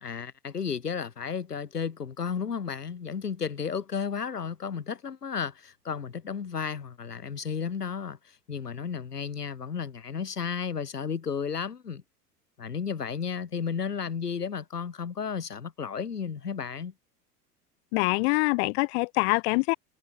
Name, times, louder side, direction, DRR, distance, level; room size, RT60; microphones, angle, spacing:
voice 1, 0.0-12.0 12.6-16.9, left 6 dB, 85° left, 1.2 m, -33 dB
voice 2, 17.9-19.7, left 29 dB, 45° left, 0.8 m, -24 dB
figure-of-eight pair, 80°, 46 cm